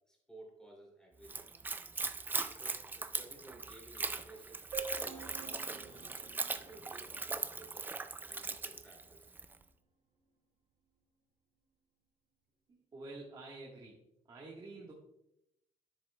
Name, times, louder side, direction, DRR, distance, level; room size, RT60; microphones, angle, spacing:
voice 1, 0.1-1.5 2.4-4.6 5.0-6.2 6.5-7.9 8.2-9.3, right 1 dB, 5° left, -2 dB, 2.5 m, -56 dB
Splash splatter / Trickle dribble, 1.2-9.6, right 3 dB, 15° right, 0.3 m, -40 dB
sound 1, 4.7-8.3, right 5 dB, 50° right, 1.3 m, -48 dB
voice 2, 12.7-14.0 14.3-14.9, right 2 dB, 30° right, -4 dB, 1.4 m, -49 dB
10.5 x 7.6 x 2.2 m, 0.83 s
cardioid pair, 145°, 14 cm